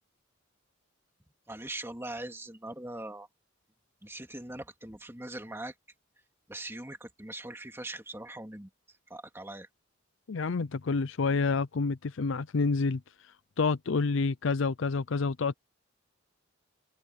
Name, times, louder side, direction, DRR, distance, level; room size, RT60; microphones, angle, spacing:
voice 1, 1.5-3.3 4.0-5.7 6.5-8.7 9.1-9.7, right 1 dB, 10° right, 2.6 m, -41 dB
voice 2, 10.3-13.0 13.6-15.5, left 4 dB, 65° left, 0.5 m, -28 dB
open air
head